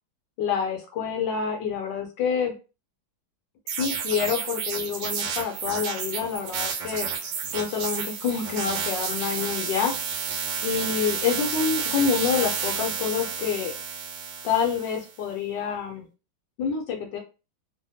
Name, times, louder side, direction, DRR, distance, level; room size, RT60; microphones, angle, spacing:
voice 1, 0.4-2.5 3.7-7.1 7.5-9.9 10.6-13.7 14.4-16.0 16.6-17.2, left 6 dB, 75° left, 2 dB, 1.2 m, -27 dB
sound 1, 3.7-15.1, right 6 dB, 75° right, 1.3 m, -31 dB
3.2 x 2.0 x 2.7 m, 0.32 s
omnidirectional pair, 2.1 m